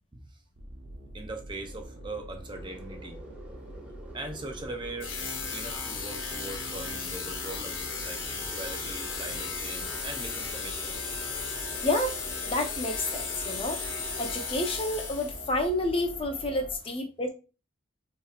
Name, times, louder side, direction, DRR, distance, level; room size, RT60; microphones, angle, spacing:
sound 1, 0.6-16.8, right 1 dB, 60° right, 1.1 m, -44 dB
voice 1, 1.1-3.2 4.1-5.2 5.5-11.1, right 2 dB, 25° right, 4 dB, 0.5 m, -41 dB
sound 2, 2.5-14.9, right 1 dB, 10° right, 1.6 m, -49 dB
sound 3, 5.0-15.6, left 5 dB, 65° left, 1.1 m, -35 dB
voice 2, 11.8-12.1 12.5-13.8 14.2-17.3, left 1 dB, 25° left, 4 dB, 0.6 m, -29 dB
6.1 x 3.0 x 2.4 m, 0.32 s
head